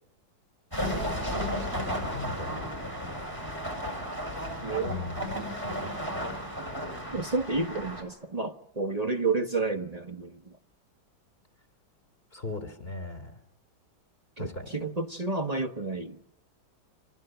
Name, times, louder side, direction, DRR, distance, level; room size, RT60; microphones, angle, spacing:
sound 1, 0.7-8.0, equal, 10° right, 6.9 m, -33 dB
voice 1, 1.7-2.7 4.8-5.2 12.3-13.4 14.4-14.7, left 3 dB, 30° left, 8 dB, 3.3 m, -38 dB
voice 2, 4.6-5.1 7.1-10.6 14.4-16.2, right 3 dB, 25° right, 6 dB, 0.9 m, -31 dB
29.5 x 25.5 x 7.9 m, 0.74 s
omnidirectional pair, 2.0 m